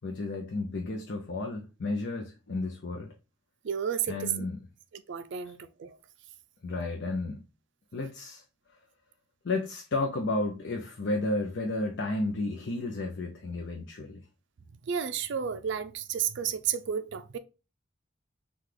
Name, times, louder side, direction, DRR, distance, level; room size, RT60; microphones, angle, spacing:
voice 1, 0.0-3.1 4.1-4.6 5.4-5.5 6.6-7.4 7.9-8.4 9.4-14.2, left 2 dB, 60° left, 0.5 m, -32 dB
voice 2, 3.6-4.3 4.9-6.0 14.9-17.4, right 8 dB, 60° right, 0.4 m, -32 dB
5.8 x 2.3 x 3.2 m
head